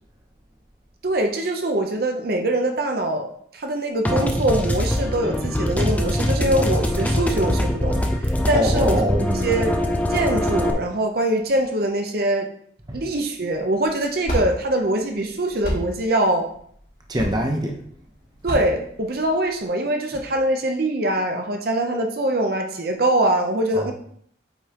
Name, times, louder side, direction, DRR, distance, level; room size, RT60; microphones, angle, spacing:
voice 1, 1.0-8.0 8.5-9.0 9.4-9.7 10.1-12.5 12.9-16.5 18.4-23.9, right 1 dB, 50° right, 0.7 m, -23 dB
sound 1, 4.1-10.7, left 1 dB, 10° left, 0.6 m, -23 dB
voice 2, 8.5-9.7 12.9-13.0 17.1-17.8 23.7-23.9, equal, 20° right, 0.9 m, -24 dB
sound 2, 13.5-19.6, equal, 50° left, 2.7 m, -31 dB
8.4 x 5.3 x 2.9 m
head